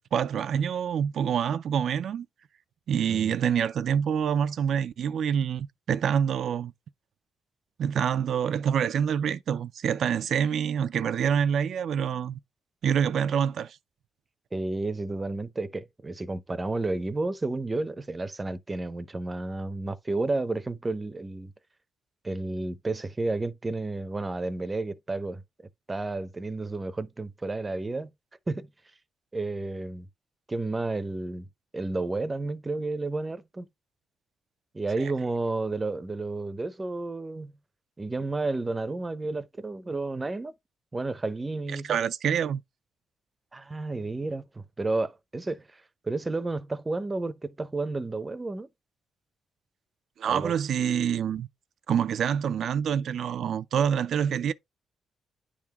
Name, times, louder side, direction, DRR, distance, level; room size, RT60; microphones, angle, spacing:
voice 1, 0.0-2.3 2.9-6.7 7.8-12.4 12.8-13.8 35.0-35.1 41.7-42.6 50.2-51.5 51.9-54.5, right 8 dB, 65° right, 0.3 m, -26 dB
voice 2, 14.5-21.5 22.2-25.4 25.9-28.1 28.5-28.7 29.3-30.1 30.5-31.5 31.7-33.7 34.7-37.5 38.0-40.5 40.9-42.0 43.5-48.7 50.3-50.5, right 2 dB, 20° right, 0.6 m, -31 dB
9.8 x 3.6 x 2.9 m
cardioid pair, 125°, 0 cm